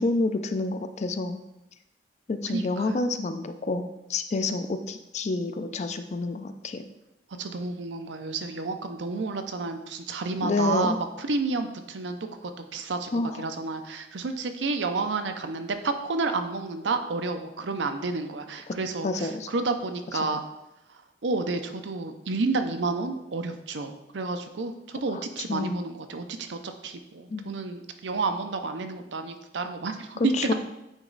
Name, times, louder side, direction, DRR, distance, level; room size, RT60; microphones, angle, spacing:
voice 1, 0.0-1.4 2.3-6.8 10.4-11.0 13.1-13.5 18.7-18.8 19.0-19.5 20.2-20.3 25.1-25.2 25.5-25.8 27.3-27.5 30.2-30.5, left 2 dB, 40° left, 9 dB, 0.4 m, -28 dB
voice 2, 2.5-2.9 7.4-12.2 12.7-20.4 21.2-30.5, right 3 dB, 85° right, 7 dB, 0.6 m, -30 dB
8.8 x 3.1 x 3.9 m, 0.92 s
head